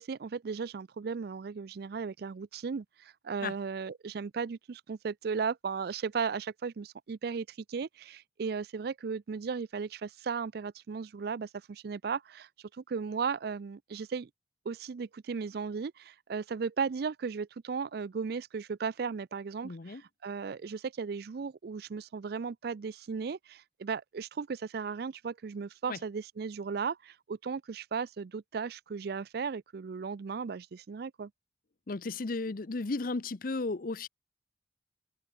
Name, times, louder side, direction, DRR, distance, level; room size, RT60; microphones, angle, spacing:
voice 1, 0.0-14.3 14.7-31.3, right 5 dB, 55° right, 0.4 m, -36 dB
voice 2, 19.6-20.0 25.9-26.0 31.9-34.1, left 3 dB, 50° left, 0.7 m, -34 dB
head